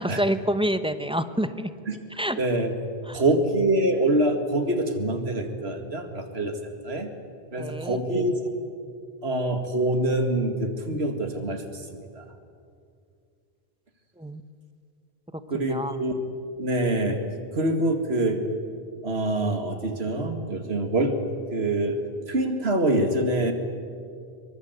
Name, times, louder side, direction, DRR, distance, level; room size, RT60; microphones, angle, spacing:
voice 1, 0.0-1.7 2.1-2.4 3.1-3.2 7.6-8.0 14.2-14.4 15.3-16.0, equal, 5° right, 11 dB, 1.0 m, -28 dB
voice 2, 2.4-2.7 3.1-6.5 6.8-7.1 7.5-8.3 9.2-12.2 15.5-16.1 16.6-17.3 17.5-18.4 19.0-21.2 21.5-22.0 22.3-23.5, right 1 dB, 85° right, 6 dB, 2.4 m, -25 dB
23.5 x 23.5 x 8.1 m, 2.3 s
omnidirectional pair, 1.0 m